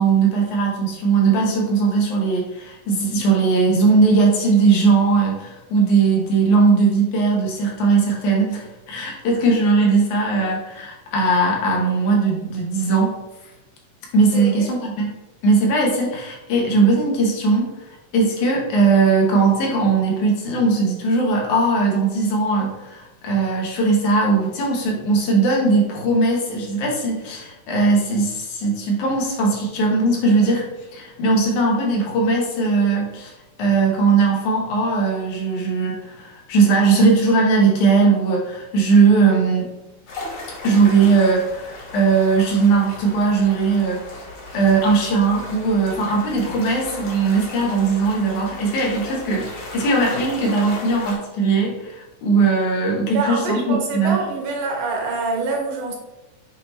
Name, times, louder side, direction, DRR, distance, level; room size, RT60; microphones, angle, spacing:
voice 1, 0.0-13.2 14.1-15.1 15.4-17.7 18.1-30.6 30.9-33.3 33.6-39.7 40.6-44.2 44.5-54.2, right 4 dB, 75° left, -1 dB, 2.6 m, -19 dB
voice 2, 14.3-14.7 53.1-56.0, right 3 dB, 75° right, 0 dB, 2.5 m, -25 dB
sound 1, 40.1-51.2, left 2 dB, 50° left, 1.9 m, -36 dB
7.4 x 3.1 x 4.1 m, 1.0 s
omnidirectional pair, 3.6 m